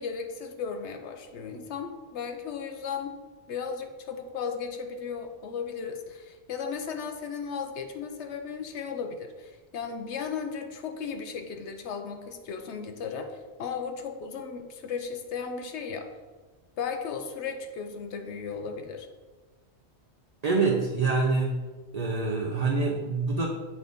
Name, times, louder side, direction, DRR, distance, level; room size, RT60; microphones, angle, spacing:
voice 1, 0.0-3.2 3.5-16.1 16.8-19.1, left 6 dB, 80° left, 5 dB, 0.9 m, -35 dB
voice 2, 20.4-21.6 21.9-23.5, right 3 dB, 45° right, 0 dB, 0.6 m, -25 dB
8.3 x 3.9 x 3.5 m, 1.3 s
omnidirectional pair, 1.1 m